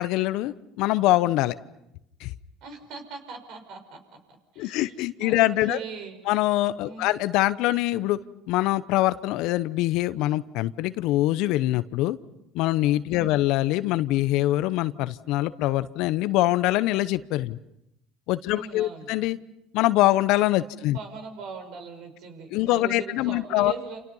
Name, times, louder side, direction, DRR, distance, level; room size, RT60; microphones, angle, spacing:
voice 1, 0.0-1.5 2.2-2.3 4.6-5.8 6.3-8.2 8.5-12.2 12.5-17.6 18.3-19.4 19.7-21.0 22.5-23.7, left 16 dB, 70° left, 14 dB, 0.9 m, -24 dB
voice 2, 2.6-4.2 4.5-6.3 6.8-7.1 13.1-13.5 18.5-19.1 20.7-24.0, right 5 dB, 65° right, 6 dB, 5.8 m, -40 dB
28.5 x 28.5 x 5.6 m, 0.84 s
hypercardioid pair, 70°, 0 cm